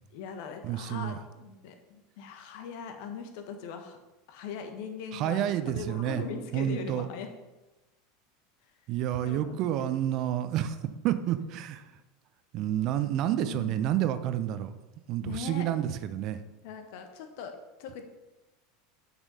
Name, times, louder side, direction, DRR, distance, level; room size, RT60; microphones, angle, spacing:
voice 1, 0.1-4.0 4.3-7.3 9.2-9.9 13.4-13.8 15.2-15.7 16.6-17.5 17.8-18.0, left 6 dB, 60° left, 6 dB, 1.3 m, -40 dB
voice 2, 0.6-1.2 5.1-6.2 6.5-7.1 8.9-10.8 11.0-11.8 12.5-14.7 15.1-16.4, right 11 dB, 50° right, 11 dB, 0.7 m, -29 dB
8.8 x 6.2 x 5.5 m, 1.1 s
figure-of-eight pair, 80°, 0 cm